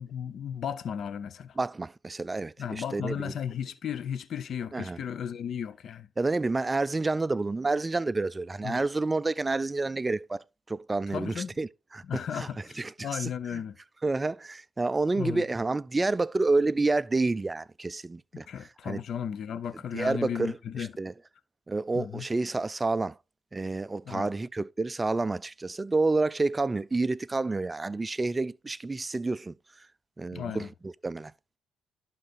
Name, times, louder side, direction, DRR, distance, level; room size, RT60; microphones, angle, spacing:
voice 1, 0.0-1.6 2.6-6.1 8.6-8.8 11.1-11.5 12.0-13.8 15.2-15.4 18.3-20.9 21.9-22.3 24.1-24.3 30.3-30.7, left 8 dB, 60° left, 0.7 m, -35 dB
voice 2, 1.6-3.2 4.7-5.0 6.2-11.7 11.9-12.5 12.8-13.6 14.0-18.5 18.8-19.0 19.9-20.5 21.0-21.1 21.7-23.1 23.5-29.5 30.2-31.3, right 3 dB, 20° right, 0.3 m, -29 dB
11.5 x 3.9 x 4.1 m
cardioid pair, 90°, 0 cm